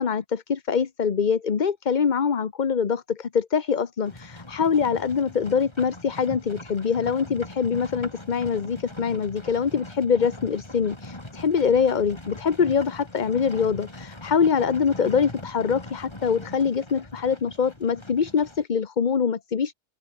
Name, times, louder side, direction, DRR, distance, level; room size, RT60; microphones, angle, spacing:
voice 1, 0.0-19.7, left 6 dB, 45° left, 1.1 m, -24 dB
Livestock farm animals working animals, 4.1-18.6, left 1 dB, 25° left, 2.9 m, -41 dB
open air
omnidirectional pair, 1.1 m